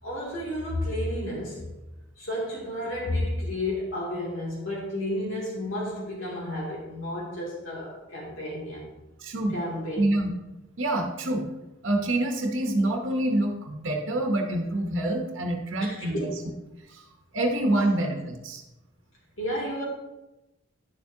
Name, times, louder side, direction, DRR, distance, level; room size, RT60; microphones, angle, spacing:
voice 1, 0.0-1.7 2.2-8.9 9.5-10.1 15.8-16.2 19.4-19.8, left 1 dB, 85° left, -4 dB, 2.6 m, -31 dB
voice 2, 9.2-9.6 10.0-10.3 10.8-11.5 11.8-16.3 16.9-17.0 17.3-18.6, right 1 dB, 80° right, 2 dB, 1.0 m, -26 dB
10.0 x 7.0 x 2.8 m, 1.0 s
head